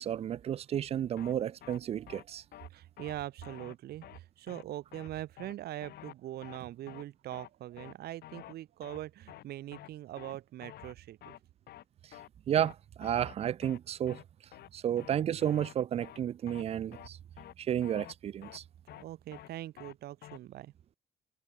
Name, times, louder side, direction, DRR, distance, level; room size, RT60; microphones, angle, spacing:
voice 1, 0.0-2.4 12.5-14.2 14.7-17.2 17.6-18.6, right 10 dB, 35° right, 0.4 m, -32 dB
sound 1, 1.2-1.3 1.6-1.8 2.1-2.2 2.5-2.7 3.0-3.1 3.4-3.7 4.0-4.2 4.5-4.6 4.9-5.1 5.4-5.5 5.8-6.1 6.4-6.6 6.9-7.0 7.3-7.5 7.8-7.9 8.2-8.5 8.8-9.0 9.3-9.4 9.7-9.9 10.2-10.3 10.6-10.9 11.2-11.4 11.7-11.8 12.1-12.3 12.6-12.7 13.0-13.3 13.6-13.8 14.1-14.2 14.5-14.7 15.0-15.1 15.4-15.7 16.0-16.2 16.5-16.6 16.9-17.1 17.4-17.5 17.8-18.1 18.4-18.6 18.9-19.0 19.3-19.5 19.8-19.9 20.2-20.4, left 13 dB, 70° left, 7.0 m, -49 dB
voice 2, 2.7-11.4 19.0-20.7, right 14 dB, 70° right, 2.9 m, -42 dB
cardioid pair, 110°, 17 cm